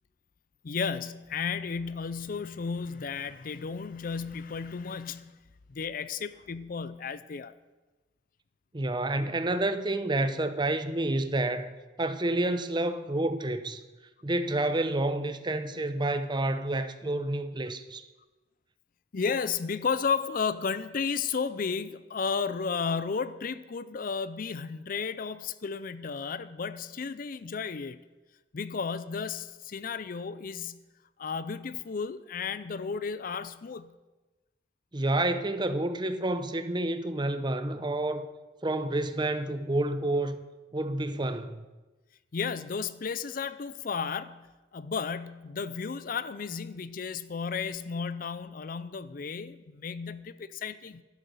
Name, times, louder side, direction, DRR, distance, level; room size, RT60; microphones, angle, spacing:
voice 1, 0.6-5.3 5.7-7.5 19.1-28.0 28.5-30.8 31.2-33.9 42.3-44.5 44.7-51.0, left 5 dB, 50° left, 0.5 m, -33 dB
voice 2, 8.7-11.7 12.0-13.8 14.2-18.1 34.9-38.3 38.6-40.4 40.7-41.6, right 2 dB, 25° right, 0.8 m, -29 dB
11.5 x 10.5 x 6.9 m
head